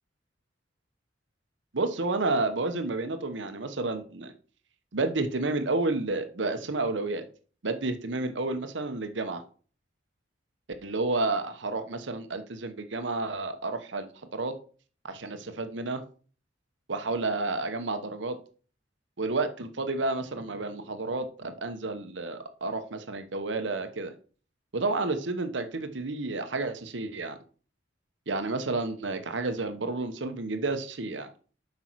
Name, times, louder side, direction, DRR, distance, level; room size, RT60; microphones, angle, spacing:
voice 1, 1.7-4.3 4.9-7.2 7.6-9.4 10.8-14.5 15.0-16.0 16.9-18.4 19.2-24.1 24.7-27.4 28.3-31.3, right 3 dB, 75° right, 8 dB, 1.0 m, -30 dB
8.3 x 5.4 x 4.6 m, 0.41 s
head